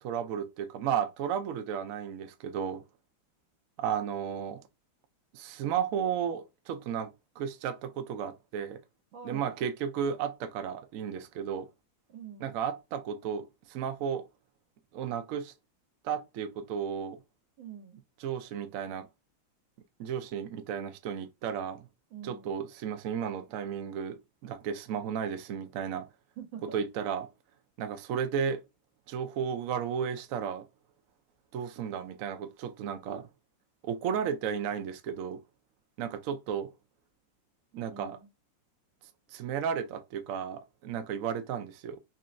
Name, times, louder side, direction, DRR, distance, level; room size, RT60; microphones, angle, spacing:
voice 1, 0.0-2.8 3.8-4.6 5.3-7.1 7.4-8.8 9.2-11.7 12.4-14.3 14.9-15.5 16.0-17.2 18.2-19.1 20.0-21.9 22.2-26.1 26.7-27.3 27.8-28.6 29.1-30.7 31.5-33.3 33.8-35.4 36.0-36.7 37.7-38.2 39.3-42.0, right 8 dB, 75° right, 0.8 m, -33 dB
voice 2, 9.1-9.5 12.1-12.6 17.6-18.0 22.1-22.5 26.4-26.8 37.9-38.3, right 7 dB, 90° right, 1.7 m, -45 dB
4.0 x 3.2 x 2.5 m
omnidirectional pair, 2.1 m